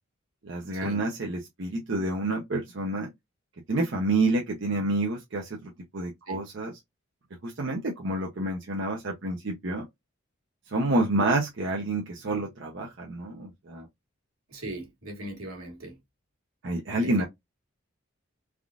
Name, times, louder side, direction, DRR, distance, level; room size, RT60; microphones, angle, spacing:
voice 1, 0.4-3.1 3.7-6.7 7.4-9.8 10.7-13.9 16.6-17.2, right 2 dB, 60° right, 0.6 m, -28 dB
voice 2, 14.5-16.0 17.0-17.3, right 1 dB, 85° right, 1.5 m, -39 dB
3.5 x 2.4 x 2.4 m
head